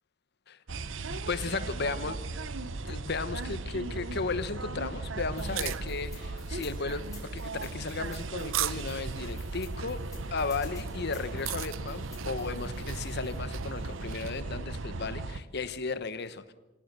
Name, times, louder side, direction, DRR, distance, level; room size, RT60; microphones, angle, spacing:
sound 1, 0.7-15.4, right 2 dB, 70° right, 1.0 m, -37 dB
voice 1, 1.1-2.3 2.8-10.0 10.3-16.5, left 4 dB, 55° left, 13 dB, 1.1 m, -35 dB
sound 2, 5.3-14.4, right 13 dB, 85° right, 0.7 m, -40 dB
sound 3, 5.4-13.4, left 5 dB, 20° left, 5.8 m, -53 dB
26.0 x 17.0 x 6.7 m, 1.1 s
head